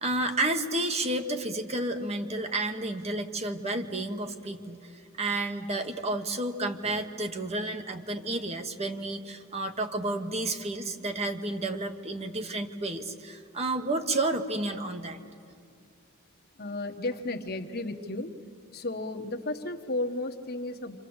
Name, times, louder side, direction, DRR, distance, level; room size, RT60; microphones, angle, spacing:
voice 1, 0.0-15.2, right 2 dB, 30° right, 6 dB, 1.2 m, -31 dB
voice 2, 16.6-18.3 18.7-21.0, left 2 dB, 45° left, 6 dB, 1.3 m, -33 dB
27.5 x 27.0 x 8.0 m, 2.4 s
head